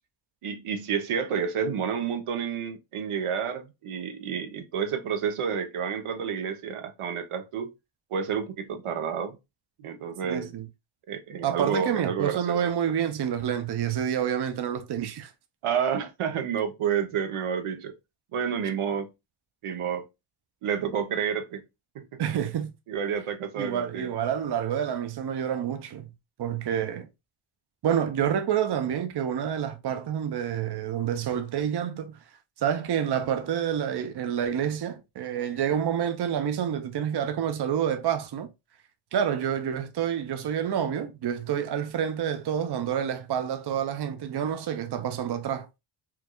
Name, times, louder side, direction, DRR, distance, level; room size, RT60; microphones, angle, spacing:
voice 1, 0.4-7.7 8.1-9.4 9.8-10.5 11.1-12.6 15.6-17.9 18.3-19.1 19.6-20.1 20.6-21.6 21.9-22.0 22.9-24.1, right 7 dB, 85° right, 0.8 m, -30 dB
voice 2, 10.2-10.7 11.4-15.3 22.2-22.7 23.6-26.1 26.4-27.1 27.8-32.2 32.6-38.5 39.1-45.7, right 9 dB, 55° right, 0.6 m, -28 dB
4.6 x 2.3 x 2.2 m
cardioid pair, 70°, 49 cm